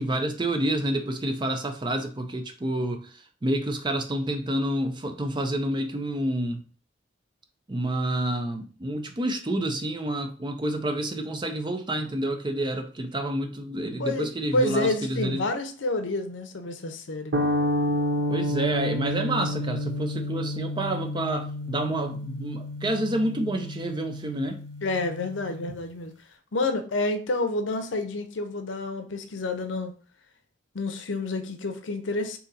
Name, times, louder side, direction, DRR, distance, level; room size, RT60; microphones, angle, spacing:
voice 1, 0.0-3.1 3.4-6.6 7.7-15.4 18.3-24.6, right 1 dB, 25° right, 0.5 m, -28 dB
voice 2, 14.5-17.6 24.8-26.1 26.5-29.9 30.7-32.4, left 2 dB, 75° left, 0.6 m, -29 dB
sound 1, 17.3-25.7, left 1 dB, 70° right, 0.8 m, -30 dB
4.0 x 2.8 x 3.9 m
head